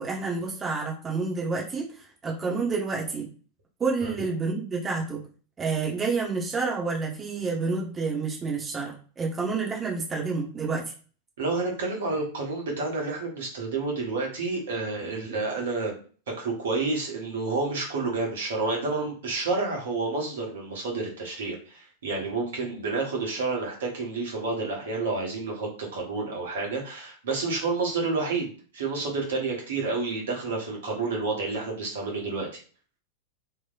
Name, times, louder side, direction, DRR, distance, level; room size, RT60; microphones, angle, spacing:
voice 1, 0.0-1.9 2.2-3.3 3.8-5.2 5.6-10.8, right 4 dB, 20° right, -2 dB, 1.0 m, -29 dB
voice 2, 11.4-16.0 16.3-32.6, right 3 dB, 60° right, 0 dB, 1.2 m, -29 dB
3.2 x 2.7 x 2.5 m, 0.41 s
figure-of-eight pair, 90°, 0 cm